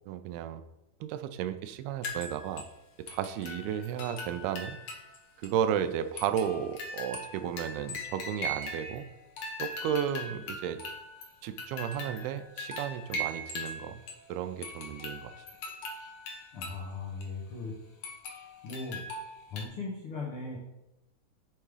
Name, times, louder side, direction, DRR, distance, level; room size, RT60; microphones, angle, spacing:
voice 1, 0.1-0.6 1.0-2.7 3.0-4.8 5.4-9.1 9.6-10.8 11.4-14.0 14.3-15.3, right 9 dB, 90° right, 10 dB, 2.5 m, -33 dB
sound 1, 2.0-2.7 3.1-5.2 5.4-5.5 6.2-9.1 9.4-14.3 14.6-16.8 17.2-17.3 18.0-19.6, left 1 dB, 65° left, 1.6 m, -40 dB
voice 2, 16.5-17.7 18.6-19.0 19.5-20.6, left 3 dB, 80° left, -4 dB, 1.2 m, -38 dB
8.7 x 3.6 x 4.8 m, 0.91 s
omnidirectional pair, 4.4 m